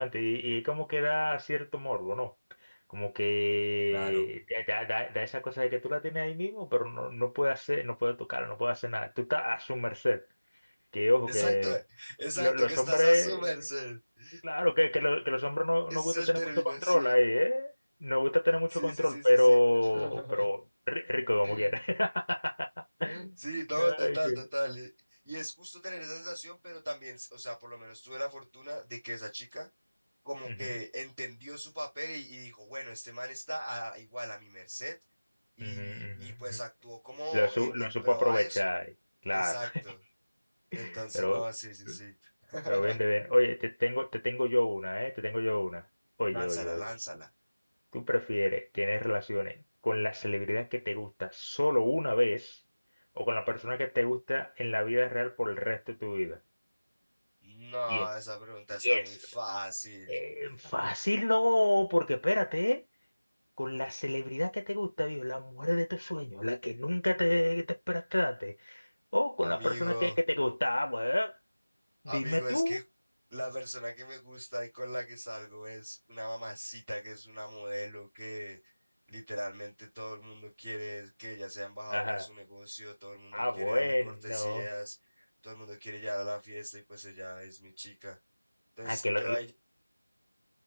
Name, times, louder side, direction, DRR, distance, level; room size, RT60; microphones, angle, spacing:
voice 1, 0.0-2.3 2.6-10.2 10.9-11.7 12.4-13.4 14.4-16.4 16.7-17.7 18.0-20.6 20.9-22.7 23.0-23.3 23.8-24.4 30.6-30.7 35.6-36.6 37.3-38.8 39.2-39.7 40.7-41.4 41.9-42.0 42.7-45.8 46.2-46.8 47.9-49.6 49.8-52.6 53.2-56.4 57.9-58.1 58.8-59.2 60.1-62.8 63.6-68.9 69.1-71.4 72.0-72.8 81.9-82.3 83.3-84.7 88.8-89.5, left 1 dB, 40° left, 0.5 m, -29 dB
voice 2, 3.9-4.2 11.2-14.4 15.9-17.1 18.7-19.6 19.9-20.5 21.4-21.8 23.0-24.9 25.2-29.7 30.2-34.9 35.6-38.7 39.3-40.0 40.7-42.1 42.5-43.0 46.3-47.3 57.4-60.2 69.4-70.1 72.0-72.8 73.3-78.6 79.1-88.2 88.8-89.5, equal, 10° right, 1.8 m, -39 dB
4.2 x 2.1 x 3.2 m
figure-of-eight pair, 175°, 0 cm